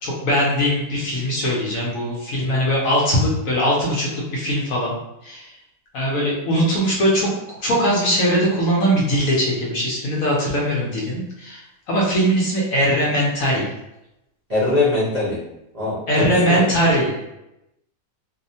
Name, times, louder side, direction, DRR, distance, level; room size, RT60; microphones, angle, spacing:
voice 1, 0.0-5.0 5.2-5.5 5.9-7.3 7.6-11.6 11.9-13.6 16.1-17.2, equal, 65° left, -4 dB, 1.0 m, -20 dB
voice 2, 14.5-15.4 15.7-16.6, left 2 dB, 40° right, -11 dB, 0.6 m, -22 dB
2.8 x 2.1 x 2.6 m, 0.88 s
omnidirectional pair, 1.7 m